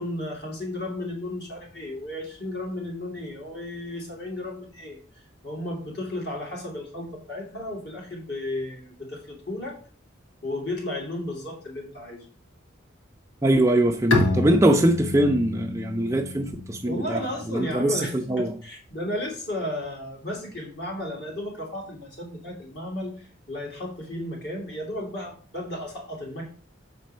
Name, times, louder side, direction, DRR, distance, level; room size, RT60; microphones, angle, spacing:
voice 1, 0.0-9.8 10.4-12.3 16.8-26.5, left 1 dB, 55° left, 2.8 m, -34 dB
voice 2, 13.4-18.5, right 1 dB, 15° right, 0.5 m, -22 dB
Bowed string instrument, 14.1-17.6, left 2 dB, 90° left, 1.2 m, -28 dB
7.5 x 4.2 x 5.4 m
head